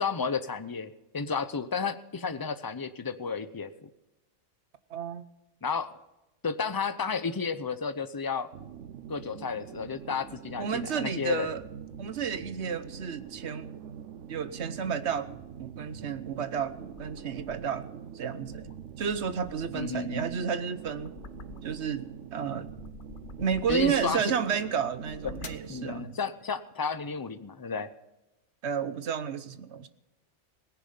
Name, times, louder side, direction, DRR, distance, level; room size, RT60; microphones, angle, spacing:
voice 1, 0.0-3.9 5.6-5.9 6.4-8.5 9.1-11.5 19.7-20.3 23.7-24.3 25.7-27.9, left 5 dB, 25° left, 12 dB, 0.6 m, -32 dB
voice 2, 4.9-5.2 10.6-11.6 12.0-13.7 14.3-18.7 19.0-21.1 21.6-22.7 23.4-26.2 28.6-29.9, right 7 dB, 65° right, 12 dB, 1.2 m, -31 dB
sound 1, 8.5-26.1, right 8 dB, 85° right, 1.1 m, -45 dB
sound 2, 15.9-17.8 18.3-22.0 22.4-24.3 24.9-25.7, left 6 dB, 50° left, 0.9 m, -48 dB
18.0 x 10.5 x 5.6 m, 0.96 s
omnidirectional pair, 1.2 m